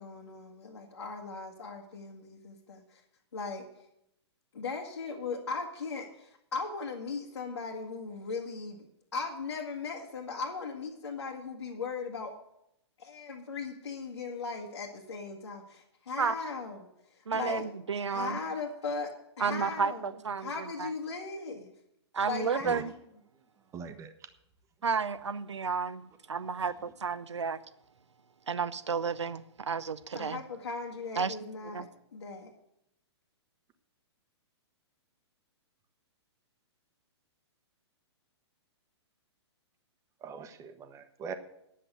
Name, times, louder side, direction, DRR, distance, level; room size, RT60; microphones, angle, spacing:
voice 1, 0.0-3.0 3.3-3.6 4.5-8.9 9.1-12.3 13.0-17.6 18.1-21.7 22.2-23.0 30.1-32.5, left 4 dB, 70° left, 1.7 m, -38 dB
voice 2, 17.3-18.4 19.4-20.5 20.8-20.9 22.1-22.9 24.8-27.6 28.5-30.4 31.2-31.4 31.7-31.9, right 5 dB, 80° right, 0.7 m, -32 dB
voice 3, 23.7-24.1 40.2-41.3, right 6 dB, 20° right, 1.1 m, -42 dB
10.0 x 7.7 x 8.0 m
figure-of-eight pair, 115°, 15 cm